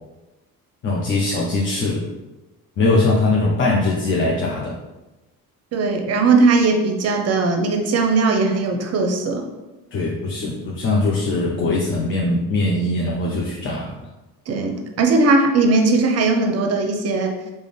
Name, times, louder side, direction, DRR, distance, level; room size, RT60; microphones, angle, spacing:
voice 1, 0.8-2.1 2.8-4.8 9.9-14.0, left 2 dB, 25° left, -3 dB, 0.5 m, -21 dB
voice 2, 5.7-9.5 14.5-17.3, right 3 dB, 35° right, 3 dB, 0.7 m, -18 dB
4.9 x 2.1 x 3.3 m, 1.1 s
figure-of-eight pair, 55°, 46 cm